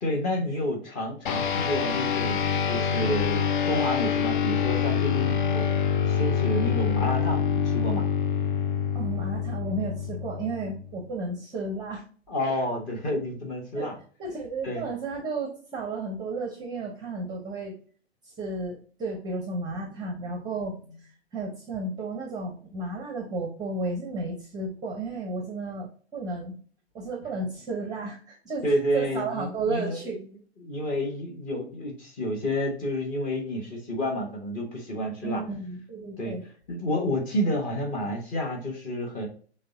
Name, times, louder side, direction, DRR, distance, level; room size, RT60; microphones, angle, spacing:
voice 1, 0.0-5.7 6.1-8.1 12.3-14.0 14.6-14.8 19.7-20.4 28.6-30.0 30.6-35.4 36.2-36.4 36.7-39.3, equal, 25° left, 2 dB, 1.0 m, -30 dB
sound 1, 1.3-11.0, left 7 dB, 50° left, 0.5 m, -26 dB
voice 2, 8.9-12.0 13.7-13.9 14.2-17.8 18.4-20.8 21.3-26.6 26.9-28.6 28.9-30.2 35.2-36.4, right 3 dB, 10° right, 0 dB, 0.7 m, -33 dB
6.5 x 2.2 x 2.5 m, 0.42 s
figure-of-eight pair, 110°, 33 cm